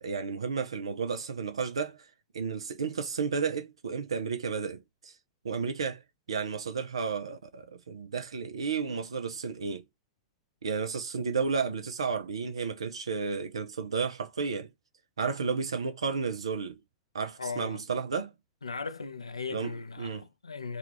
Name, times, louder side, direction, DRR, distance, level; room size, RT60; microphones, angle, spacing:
voice 1, 0.0-5.2 5.4-6.0 6.3-9.8 10.6-14.7 15.2-16.8 17.1-18.3 19.5-20.3, right 5 dB, 75° right, 0.4 m, -32 dB
voice 2, 17.4-17.8 18.6-20.8, left 4 dB, 80° left, 0.4 m, -38 dB
2.4 x 2.3 x 3.0 m
figure-of-eight pair, 95°, 3 cm